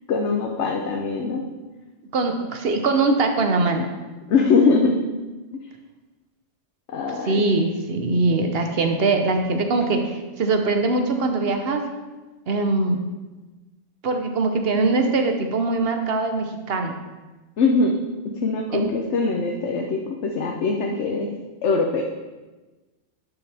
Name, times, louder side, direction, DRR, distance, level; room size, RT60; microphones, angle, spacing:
voice 1, 0.1-1.4 4.3-5.0 6.9-7.4 17.6-17.9 18.4-21.3 21.6-22.0, left 4 dB, 85° left, 1 dB, 1.1 m, -22 dB
voice 2, 2.1-3.9 7.3-11.8 12.5-13.0 14.0-17.0 18.7-18.9, right 3 dB, 60° right, 5 dB, 1.1 m, -22 dB
11.5 x 5.9 x 3.4 m, 1.2 s
omnidirectional pair, 1.2 m